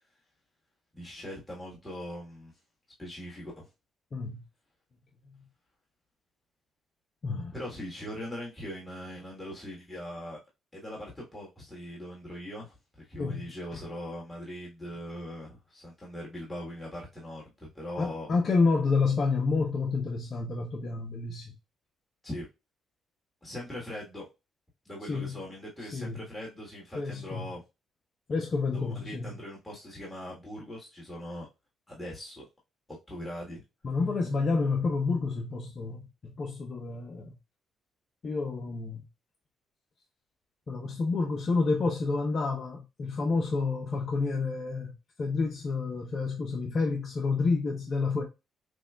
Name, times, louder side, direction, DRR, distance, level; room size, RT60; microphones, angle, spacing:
voice 1, 0.9-2.5 3.0-3.7 7.5-10.4 10.7-18.3 22.2-22.5 23.4-24.3 24.8-27.6 28.7-31.5 31.9-32.5 33.1-33.6, left 1 dB, 15° left, 1.5 m, -41 dB
voice 2, 4.1-4.4 7.2-7.5 13.2-13.4 18.0-21.5 25.1-25.4 25.8-26.2 26.9-27.5 28.3-29.3 33.8-37.4 38.2-39.0 40.7-48.2, left 4 dB, 45° left, 0.6 m, -29 dB
6.1 x 2.2 x 2.3 m
cardioid pair, 90°, 0 cm